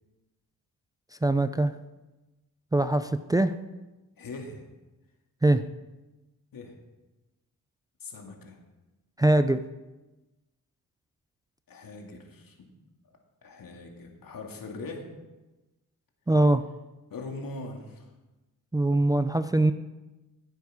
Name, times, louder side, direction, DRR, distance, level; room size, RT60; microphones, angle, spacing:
voice 1, 1.2-1.7 2.7-3.6 5.4-5.6 9.2-9.6 16.3-16.6 18.7-19.7, right 2 dB, 10° right, 10 dB, 0.4 m, -22 dB
voice 2, 4.2-4.7 6.5-6.7 8.0-8.6 11.7-12.7 13.0-15.1 17.1-18.1, left 3 dB, 70° left, 2 dB, 2.3 m, -41 dB
14.5 x 8.2 x 5.0 m, 1.1 s
cardioid pair, 90°, 36 cm